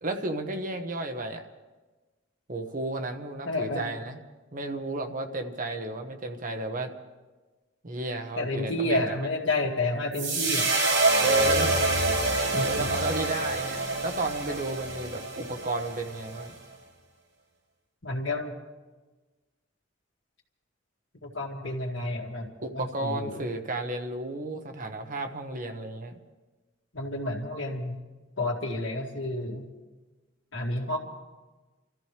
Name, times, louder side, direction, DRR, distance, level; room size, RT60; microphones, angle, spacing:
voice 1, 0.0-1.5 2.5-4.2 4.5-6.9 7.8-9.1 11.2-11.8 12.7-16.5 22.6-26.1, right 2 dB, 45° right, 5 dB, 1.1 m, -32 dB
voice 2, 3.5-3.9 8.4-10.7 12.4-12.9 18.0-18.5 21.2-22.5 22.7-23.5 26.9-28.0 28.4-29.7 30.5-31.0, left 2 dB, 75° left, 0 dB, 2.2 m, -30 dB
sound 1, 10.1-16.5, right 2 dB, 80° right, 5.0 m, -26 dB
29.0 x 14.0 x 3.4 m, 1.2 s
head